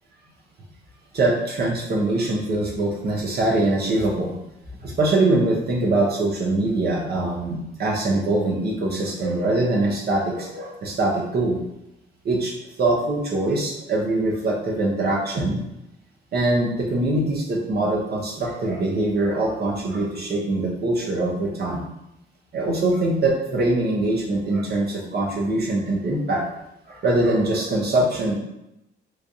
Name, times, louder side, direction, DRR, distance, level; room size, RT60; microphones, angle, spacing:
voice 1, 1.1-4.3 4.8-11.6 12.2-12.5 12.8-15.6 16.3-21.8 22.5-26.4 26.9-28.4, right 2 dB, 55° right, -2 dB, 1.0 m, -23 dB
3.3 x 2.3 x 4.0 m, 0.86 s
cardioid pair, 90°, 20 cm